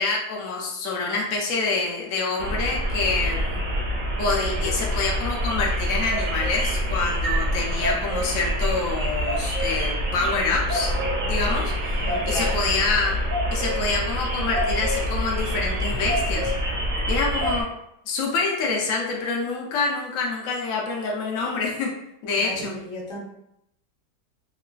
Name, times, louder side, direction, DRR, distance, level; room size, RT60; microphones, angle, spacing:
voice 1, 0.0-3.6 4.2-10.9 11.3-13.2 13.5-16.5 17.1-17.7 18.1-21.9 22.2-22.7, left 4 dB, 90° left, -1 dB, 0.7 m, -26 dB
sound 1, 2.4-17.6, equal, 65° right, 0.8 m, -26 dB
voice 2, 12.0-12.6 22.3-23.2, left 1 dB, 55° left, -3 dB, 1.0 m, -34 dB
3.1 x 2.4 x 2.2 m, 0.78 s
omnidirectional pair, 2.0 m